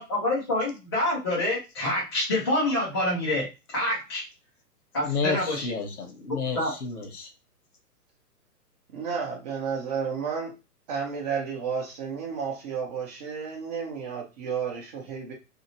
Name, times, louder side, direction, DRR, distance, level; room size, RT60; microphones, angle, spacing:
voice 1, 0.0-4.2 4.9-5.7 6.6-6.7, left 1 dB, 20° left, -6 dB, 0.4 m, -27 dB
voice 2, 5.1-7.3, left 4 dB, 65° left, 4 dB, 1.1 m, -31 dB
voice 3, 8.9-10.5 10.9-15.3, right 6 dB, 25° right, 0 dB, 0.7 m, -32 dB
2.8 x 2.6 x 2.7 m, 0.27 s
figure-of-eight pair, 125°, 47 cm